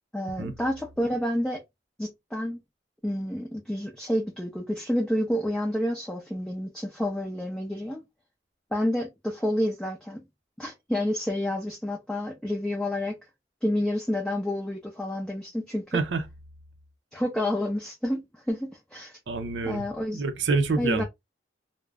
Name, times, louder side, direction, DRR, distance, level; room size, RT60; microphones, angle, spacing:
voice 1, 0.1-1.6 2.0-2.6 3.0-8.0 8.7-10.2 10.6-13.2 13.6-16.0 17.1-19.2 19.6-20.2 20.8-21.0, left 1 dB, 5° left, 0.4 m, -29 dB
voice 2, 15.9-16.3 19.3-21.0, right 4 dB, 80° right, 0.5 m, -27 dB
2.4 x 2.0 x 3.3 m
head